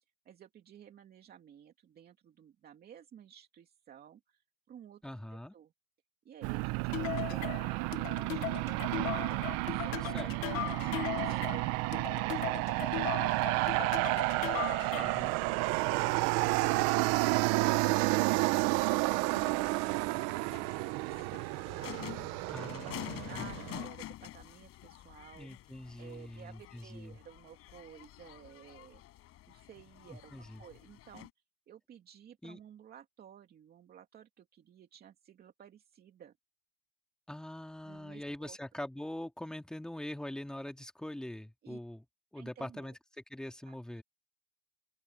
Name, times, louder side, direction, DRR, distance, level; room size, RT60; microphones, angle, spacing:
voice 1, 0.0-5.0 5.3-5.7 6.2-8.7 9.7-15.0 22.8-29.0 29.5-31.3 31.7-36.3 37.8-38.6 41.6-41.8 42.3-42.9 43.7-43.8, right 9 dB, 25° right, 2.6 m, -54 dB
voice 2, 5.0-5.5 10.1-10.3 14.9-15.3 16.2-16.5 22.5-23.4 25.4-27.2 30.1-30.6 32.4-32.6 37.3-42.0 42.3-43.0 43.3-44.0, left 1 dB, ahead, 2.3 m, -43 dB
Aircraft, 6.4-23.9, right 22 dB, 40° right, 0.9 m, -31 dB
sound 1, 6.9-15.3, left 17 dB, 75° left, 1.4 m, -39 dB
sound 2, 12.3-31.3, left 15 dB, 35° left, 6.8 m, -50 dB
open air
supercardioid pair, 150°, 40 cm